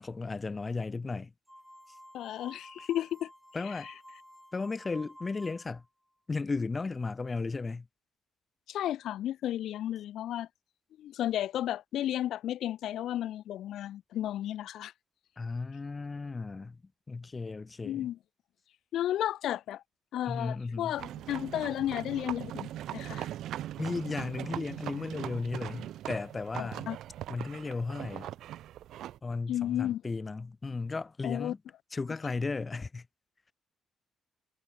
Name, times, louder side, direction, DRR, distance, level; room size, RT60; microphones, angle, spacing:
voice 1, 0.0-1.3 3.5-3.9 4.5-5.8 6.3-7.9 15.4-16.8 17.1-18.1 20.3-20.9 23.8-26.9 27.3-28.3 29.2-31.6 31.9-33.1, left 4 dB, 20° left, 2.7 m, -35 dB
sound 1, 1.5-5.9, equal, ahead, 3.3 m, -52 dB
voice 2, 2.1-3.3 3.6-3.9 8.7-10.5 11.0-14.9 17.8-18.2 18.9-19.8 20.1-23.3 26.6-27.0 29.5-30.0 31.2-31.5, left 12 dB, 70° left, 1.2 m, -33 dB
sound 2, 21.0-29.2, right 12 dB, 75° right, 1.9 m, -40 dB
cardioid pair, 125°, 0 cm